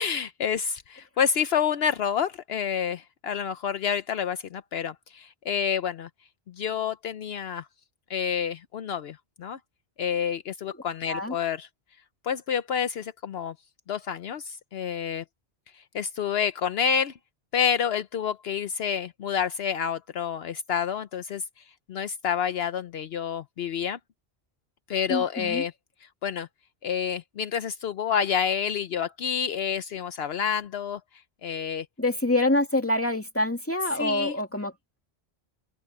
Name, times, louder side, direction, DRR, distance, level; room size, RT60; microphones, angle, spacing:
voice 1, 0.0-6.1 6.5-7.7 8.1-9.6 10.0-11.7 12.2-13.5 13.9-15.2 15.7-17.1 17.5-21.4 21.9-24.0 24.9-25.7 26.2-26.5 26.8-31.0 31.4-31.9 33.9-34.4, left 7 dB, 70° left, 0.9 m, -28 dB
voice 2, 25.1-25.6 32.0-34.7, left 1 dB, 10° left, 2.6 m, -26 dB
omnidirectional pair, 1.1 m